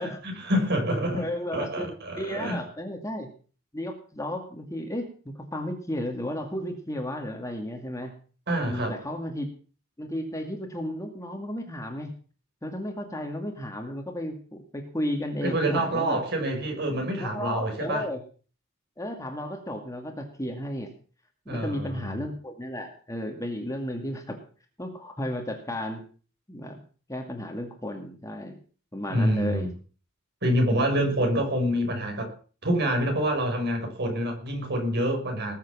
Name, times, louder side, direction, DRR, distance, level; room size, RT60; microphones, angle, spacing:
voice 1, 0.0-1.3 1.5-2.6 8.5-8.9 15.4-18.1 21.5-22.2 29.1-29.7 30.4-32.3 32.6-35.6, right 1 dB, 55° right, 4 dB, 5.9 m, -27 dB
voice 2, 1.1-3.3 3.7-8.1 8.6-9.5 10.0-12.1 12.6-16.2 17.2-18.2 19.0-20.9 21.5-24.4 24.8-26.0 26.5-26.8 27.1-28.6 28.9-29.7 31.2-31.3, left 1 dB, 15° left, 3 dB, 2.2 m, -33 dB
20.0 x 7.4 x 7.3 m, 0.41 s
head